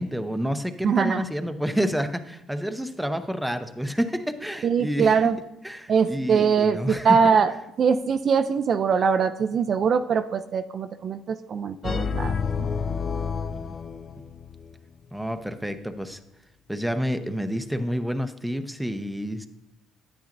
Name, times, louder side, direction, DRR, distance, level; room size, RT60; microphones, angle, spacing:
voice 1, 0.0-5.3 5.6-7.2 13.6-13.7 15.1-16.2 16.7-19.5, equal, ahead, 8 dB, 0.7 m, -29 dB
voice 2, 0.8-1.2 4.6-5.4 5.9-7.5 7.8-12.3, right 6 dB, 50° right, 9 dB, 0.4 m, -22 dB
sound 1, 11.8-14.8, left 6 dB, 40° left, 0.4 m, -29 dB
10.0 x 9.2 x 2.6 m, 0.92 s
supercardioid pair, 90°, 0 cm